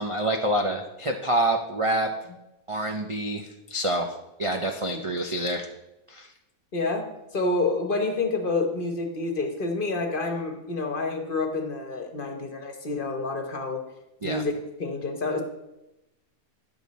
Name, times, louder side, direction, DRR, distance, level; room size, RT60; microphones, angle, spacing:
voice 1, 0.0-2.1 2.7-5.7 6.1-6.3 14.2-14.4, right 1 dB, 55° right, 3 dB, 0.3 m, -27 dB
voice 2, 6.7-7.1 7.3-13.8 14.2-15.4, left 3 dB, 40° left, 4 dB, 1.0 m, -28 dB
10.5 x 7.0 x 4.1 m, 0.95 s
omnidirectional pair, 1.6 m